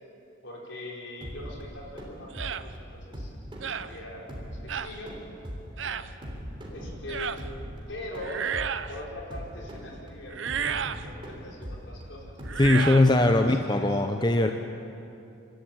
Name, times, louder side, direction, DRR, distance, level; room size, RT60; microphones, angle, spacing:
voice 1, 0.4-3.3 3.6-4.3 4.5-5.2 5.8-6.2 6.7-7.3 7.9-8.5 8.9-12.3 13.4-14.0, left 1 dB, 65° left, -2 dB, 4.7 m, -42 dB
sound 1, 1.2-13.5, equal, 25° right, 3.2 m, -41 dB
sound 2, 2.3-2.6 3.6-3.9 4.7-4.9 5.8-6.1 7.1-7.4 8.2-9.0 10.3-11.0 12.4-13.1, right 7 dB, 65° right, 0.6 m, -31 dB
voice 2, 12.6-14.5, left 2 dB, 20° left, 5 dB, 0.7 m, -21 dB
25.5 x 13.0 x 9.0 m, 2.7 s
head